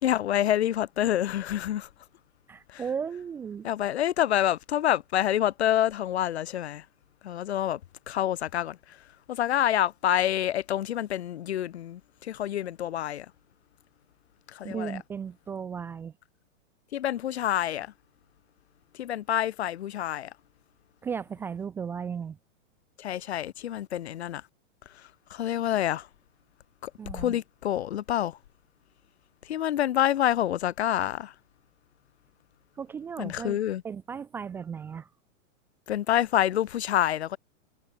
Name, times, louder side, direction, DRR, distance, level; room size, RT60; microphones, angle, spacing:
voice 1, 0.0-1.9 2.7-2.8 3.6-6.8 7.2-7.8 8.1-9.0 9.3-13.2 14.5-15.0 16.9-17.9 19.0-20.3 23.0-24.4 25.3-26.1 26.8-28.4 29.4-31.3 33.2-33.8 35.9-37.4, left 11 dB, 55° left, 1.6 m, -27 dB
voice 2, 2.5-3.7 14.6-16.1 21.0-22.4 27.0-27.4 32.8-33.6 33.8-35.1, right 7 dB, 5° right, 0.8 m, -35 dB
hypercardioid pair, 175°, 40 cm